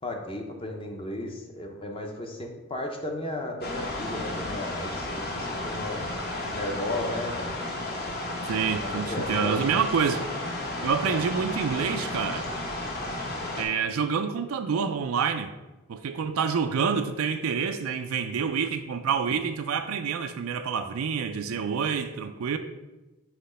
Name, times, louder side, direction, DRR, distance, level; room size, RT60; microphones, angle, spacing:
voice 1, 0.0-6.1 6.5-7.5 8.8-9.7 10.8-11.2, left 1 dB, 25° left, 2 dB, 0.6 m, -35 dB
sound 1, 3.6-13.6, left 2 dB, 45° left, 1.0 m, -33 dB
voice 2, 8.5-10.2 10.8-12.5 13.6-15.5 15.9-22.6, right 6 dB, 80° right, 7 dB, 0.4 m, -27 dB
5.8 x 3.1 x 5.5 m, 1.1 s
head